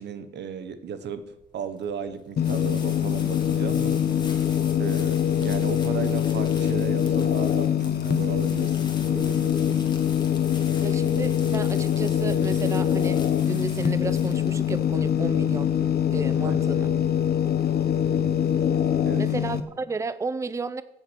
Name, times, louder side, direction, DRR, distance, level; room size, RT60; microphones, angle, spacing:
voice 1, 0.0-4.0 4.8-9.8 16.4-16.6 19.0-19.2, right 7 dB, 90° right, 1.3 m, -35 dB
sound 1, 1.2-16.1, left 3 dB, 25° left, 2.4 m, -45 dB
sound 2, 2.4-19.6, left 9 dB, 65° left, 1.2 m, -24 dB
voice 2, 10.8-13.2 13.5-15.7 16.1-16.9 19.2-20.8, right 3 dB, 15° right, 0.6 m, -32 dB
16.0 x 7.8 x 6.3 m
wide cardioid pair, 140°, 17 cm